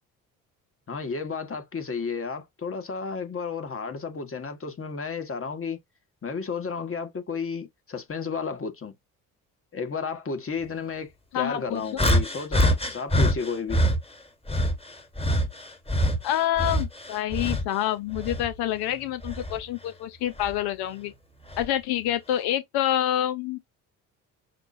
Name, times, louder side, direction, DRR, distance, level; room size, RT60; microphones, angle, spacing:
voice 1, 0.9-5.8 6.2-8.9 9.7-13.8, left 5 dB, 35° left, 1.5 m, -32 dB
voice 2, 11.3-12.0 16.2-21.1 21.6-23.6, left 12 dB, 70° left, 0.7 m, -27 dB
sound 1, 12.0-14.0 14.5-17.8 18.1-19.6 20.4-20.6 21.5-21.7, equal, 15° left, 1.6 m, -25 dB
5.8 x 2.3 x 2.5 m
hypercardioid pair, 55°, 40 cm